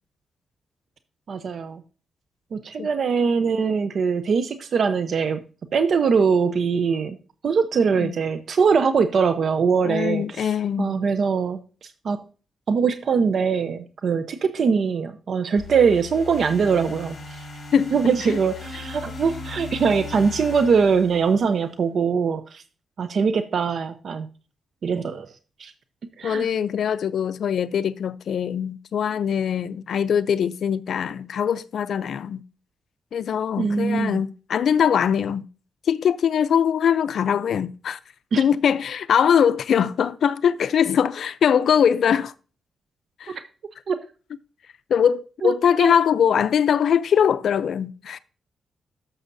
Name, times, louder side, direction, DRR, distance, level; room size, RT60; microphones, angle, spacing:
voice 1, 1.3-1.8 2.5-5.4 5.7-7.2 7.4-10.5 10.8-12.2 12.7-17.4 17.9-22.6 23.0-24.3 24.8-25.3 25.6-25.7 26.2-26.5 33.6-34.2 38.3-38.4 43.9-44.0 45.4-45.5 45.8-45.9, right 5 dB, 65° right, 0.7 m, -22 dB
voice 2, 9.8-11.0 17.7-18.4 26.2-32.4 33.1-35.4 35.9-38.0 38.4-42.3 43.2-43.4 44.9-48.2, left 8 dB, 75° left, 0.5 m, -22 dB
sound 1, 15.6-21.7, left 4 dB, 40° left, 4.7 m, -38 dB
11.0 x 7.2 x 2.6 m
cardioid pair, 95°, 0 cm